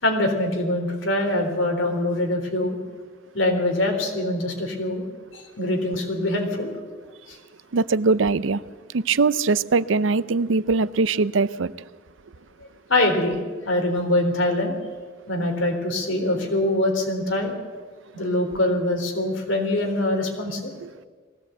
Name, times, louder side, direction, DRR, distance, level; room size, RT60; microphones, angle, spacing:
voice 1, 0.0-2.8 3.3-5.1 5.3-6.7 7.3-7.4 12.9-14.7 15.3-17.5 18.1-20.7, left 1 dB, 90° left, 3.8 m, -24 dB
voice 2, 7.7-8.6 8.9-11.7 20.8-20.9, right 4 dB, 80° right, 0.6 m, -21 dB
19.5 x 16.5 x 8.0 m
head